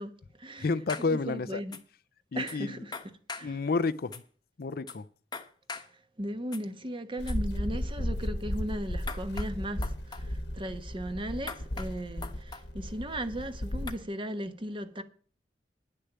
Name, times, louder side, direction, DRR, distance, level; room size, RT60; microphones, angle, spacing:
voice 1, 0.0-0.7 1.0-1.8 2.3-2.9 3.3-3.6 5.8-15.0, right 1 dB, 30° right, 1.2 m, -37 dB
voice 2, 0.6-1.6 2.3-2.7 3.4-4.2 4.6-5.1, left 4 dB, 60° left, 0.5 m, -30 dB
sound 1, 0.9-1.1 1.7-1.8 2.5-2.6 2.9-3.5 4.1-4.2 4.9-5.0 5.3-5.9 6.5-6.6 7.3-7.4 9.1-9.5 9.8-10.2 11.5-11.9 12.2-12.6 13.9-14.0, left 4 dB, 25° left, 1.1 m, -40 dB
sound 2, 7.2-13.9, left 1 dB, 85° left, 1.5 m, -34 dB
10.5 x 6.7 x 8.7 m
head